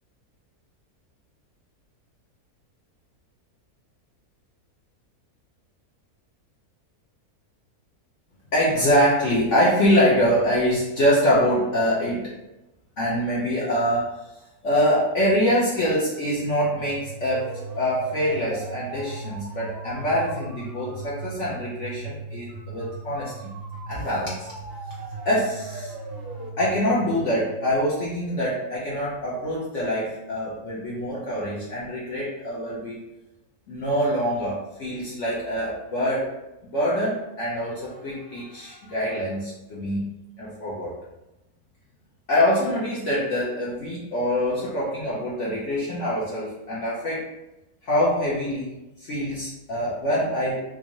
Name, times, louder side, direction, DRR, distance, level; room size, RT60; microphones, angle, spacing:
voice 1, 8.5-12.3 13.0-14.2 14.6-17.5 17.8-23.3 23.9-24.5 25.2-25.9 26.6-33.0 33.7-36.3 36.6-40.9 42.3-47.3 47.8-50.7, equal, 55° left, -7 dB, 1.0 m, -24 dB
sound 1, 16.3-28.1, right 3 dB, 55° right, 0.7 m, -38 dB
3.6 x 2.6 x 3.0 m, 0.95 s
omnidirectional pair, 1.6 m